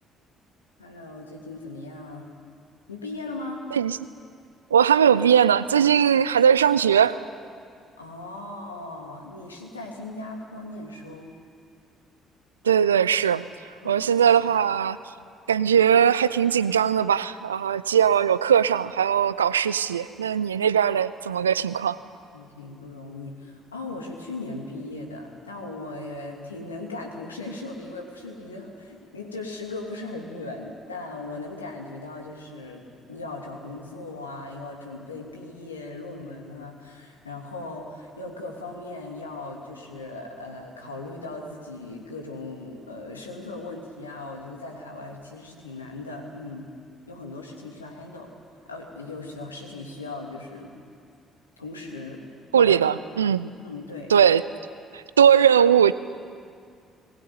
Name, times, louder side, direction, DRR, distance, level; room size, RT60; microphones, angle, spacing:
voice 1, 0.8-2.3 2.9-3.6 8.0-11.3 13.8-14.1 22.3-32.8 33.1-46.7 47.1-48.3 48.7-50.7 51.6-52.2 52.5-52.8 53.6-54.1, left 2 dB, 90° left, 0 dB, 2.8 m, -38 dB
voice 2, 4.7-7.2 12.6-13.4 13.8-15.0 15.5-22.0 52.5-53.5 54.1-54.4 54.9-55.9, right 8 dB, 85° right, 17 dB, 0.5 m, -20 dB
21.0 x 20.0 x 9.5 m, 2.3 s
figure-of-eight pair, 50°, 0 cm